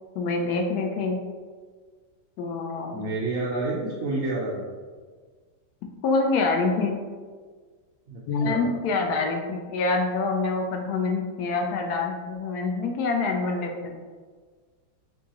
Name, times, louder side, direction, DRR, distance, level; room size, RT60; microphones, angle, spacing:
voice 1, 0.1-1.2 2.4-3.0 6.0-7.0 8.3-14.0, left 3 dB, 75° left, 2 dB, 0.9 m, -26 dB
voice 2, 2.9-4.6 8.1-8.7, right 2 dB, 75° right, -5 dB, 0.7 m, -29 dB
4.6 x 2.7 x 2.9 m, 1.5 s
omnidirectional pair, 2.1 m